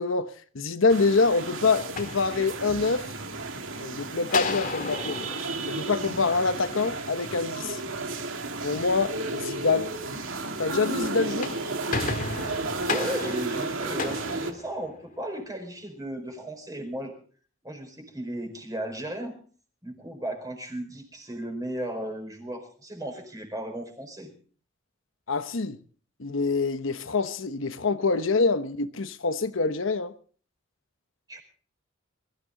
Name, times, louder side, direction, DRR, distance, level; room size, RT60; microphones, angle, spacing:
voice 1, 0.0-3.1 3.8-5.3 5.7-7.8 8.6-9.9 10.6-11.6 25.3-25.8 26.2-30.1, left 4 dB, 75° left, 1.0 m, -26 dB
sound 1, 0.9-14.5, right 3 dB, 80° right, 2.1 m, -33 dB
sound 2, 1.8-3.0 4.3-6.8 11.2-15.2, left 4 dB, 40° left, 1.9 m, -34 dB
voice 2, 12.9-17.1 17.6-19.3 19.8-24.3 31.3-31.4, right 1 dB, 20° right, 4.6 m, -35 dB
22.5 x 14.5 x 3.8 m
head